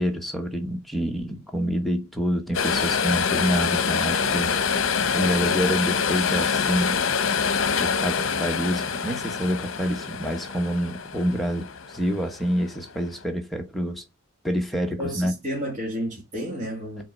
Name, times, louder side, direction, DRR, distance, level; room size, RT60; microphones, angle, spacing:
voice 1, 0.0-7.0 7.8-14.0 14.4-15.3, equal, ahead, 1.2 m, -27 dB
sound 1, 2.5-12.9 13.2-13.3, left 6 dB, 65° left, 0.8 m, -25 dB
voice 2, 15.0-17.0, equal, 35° right, 2.4 m, -31 dB
5.6 x 4.4 x 6.1 m
head